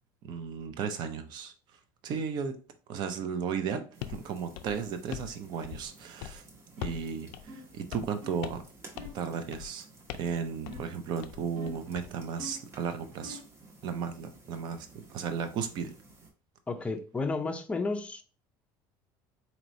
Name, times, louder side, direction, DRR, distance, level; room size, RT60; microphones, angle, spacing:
voice 1, 0.2-1.5 2.0-2.6 2.9-6.4 6.8-8.6 9.1-9.9 10.1-13.4 13.8-15.9, right 6 dB, 50° right, 0.6 m, -35 dB
sound 1, 3.9-16.3, right 2 dB, 30° right, 1.0 m, -55 dB
sound 2, 4.0-4.2 4.5-5.3 5.6-5.9 6.2-6.4 6.8-7.1 7.3-7.4 7.9-8.2 8.4-8.7 9.0-9.2 9.5-9.7 10.1-10.4 10.7-10.9 11.2-12.1, left 13 dB, 80° left, 0.4 m, -41 dB
sound 3, 6.8-7.1 7.5-7.8 8.2-8.5 8.9-9.3 10.7-11.0 11.6-11.9 12.4-12.7 13.2-13.6, equal, 80° right, 1.5 m, -46 dB
voice 2, 16.7-18.2, left 3 dB, 15° left, 0.4 m, -32 dB
4.1 x 3.0 x 2.6 m
cardioid pair, 140°, 9 cm